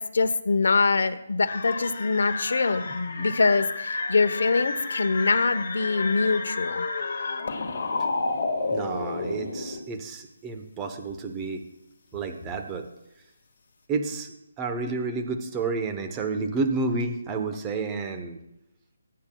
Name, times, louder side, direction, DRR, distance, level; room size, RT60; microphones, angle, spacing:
voice 1, 0.0-6.9, left 4 dB, 70° left, 9 dB, 0.9 m, -24 dB
sound 1, 1.4-9.8, left 3 dB, 55° left, 1.8 m, -31 dB
voice 2, 8.7-11.6 12.1-12.9 13.9-18.4, right 3 dB, 15° right, 5 dB, 0.9 m, -30 dB
21.0 x 9.4 x 2.3 m, 0.83 s
hypercardioid pair, 165°, 0 cm